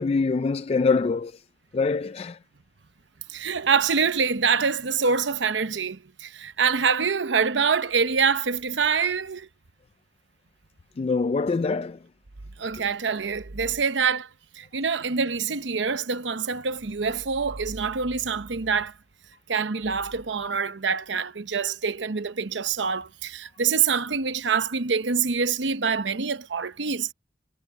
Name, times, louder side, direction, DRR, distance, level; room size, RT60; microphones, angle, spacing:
voice 1, 0.0-1.3 1.7-2.4 11.0-12.0, left 4 dB, 35° left, 0.3 m, -24 dB
voice 2, 3.3-9.5 12.6-14.3 14.6-18.9 19.5-27.1, right 5 dB, 80° right, 0.9 m, -25 dB
head